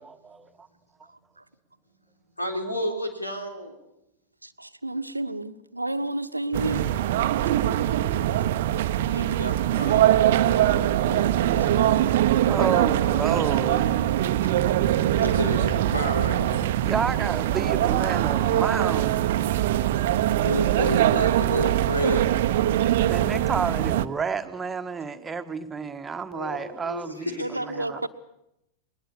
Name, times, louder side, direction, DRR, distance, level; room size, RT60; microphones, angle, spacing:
voice 1, 0.0-0.5 12.5-13.9 16.8-19.3 23.1-28.1, right 5 dB, 15° right, 1.6 m, -30 dB
voice 2, 2.4-3.8 9.0-12.0 14.4-14.5 15.2-16.7 20.4-22.4 26.3-27.5, equal, 85° left, 3.6 m, -31 dB
voice 3, 4.4-7.0 27.2-28.1, right 2 dB, 85° right, 1.1 m, -32 dB
sound 1, 6.5-24.0, right 12 dB, 55° right, 0.8 m, -22 dB
21.0 x 20.0 x 8.5 m
figure-of-eight pair, 90°, 0 cm